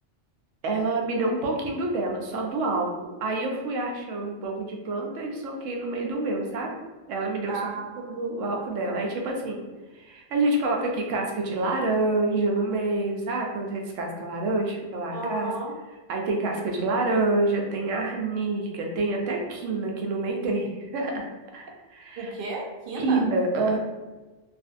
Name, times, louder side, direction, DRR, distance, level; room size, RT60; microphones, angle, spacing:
voice 1, 0.6-2.9 3.2-6.7 7.1-7.6 8.0-9.6 9.9-15.5 16.1-21.3 21.5-22.3 23.0-23.8, right 2 dB, 80° right, 1 dB, 0.9 m, -27 dB
voice 2, 7.5-8.2 15.1-15.7 22.2-23.3, right 3 dB, 60° right, 0 dB, 0.6 m, -33 dB
2.5 x 2.5 x 2.4 m, 1.2 s
omnidirectional pair, 1.3 m